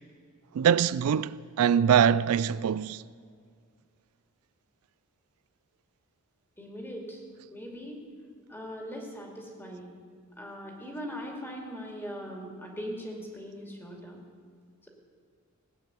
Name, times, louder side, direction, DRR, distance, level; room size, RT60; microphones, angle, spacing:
voice 1, 0.5-3.0, right 8 dB, 85° right, 0.3 m, -23 dB
voice 2, 6.6-7.2 7.5-8.0 8.5-9.9 10.4-14.2, equal, 10° left, 2.4 m, -40 dB
17.5 x 9.3 x 7.0 m
head